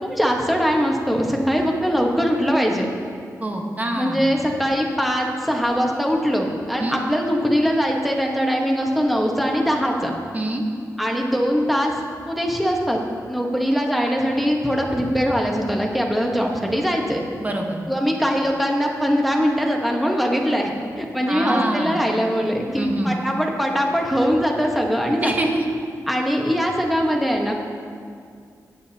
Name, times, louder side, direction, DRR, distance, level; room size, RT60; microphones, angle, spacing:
voice 1, 0.0-2.9 3.9-10.1 11.0-13.0 13.3-17.2 17.9-25.3 26.1-27.5, equal, ahead, 0 dB, 1.3 m, -21 dB
voice 2, 3.4-4.3 6.8-7.0 10.3-10.6 17.4-17.8 21.3-22.0 22.8-23.2 25.2-25.6, right 1 dB, 25° right, 1 dB, 1.2 m, -25 dB
15.0 x 9.5 x 2.9 m, 2.3 s
wide cardioid pair, 115°, 7 cm